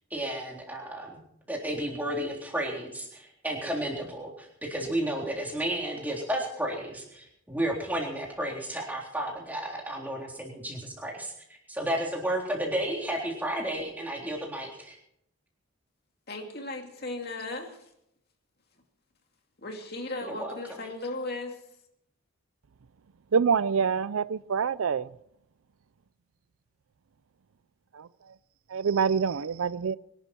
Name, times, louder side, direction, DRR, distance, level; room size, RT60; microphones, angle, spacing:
voice 1, 0.1-1.2 1.5-11.3 11.7-15.0 20.2-20.8, right 1 dB, 10° right, 3.6 m, -32 dB
voice 2, 16.3-17.8 19.6-21.6, left 2 dB, 50° left, 2.5 m, -36 dB
voice 3, 23.3-25.1 28.7-30.0, right 6 dB, 85° right, 0.5 m, -26 dB
24.5 x 11.5 x 4.5 m
head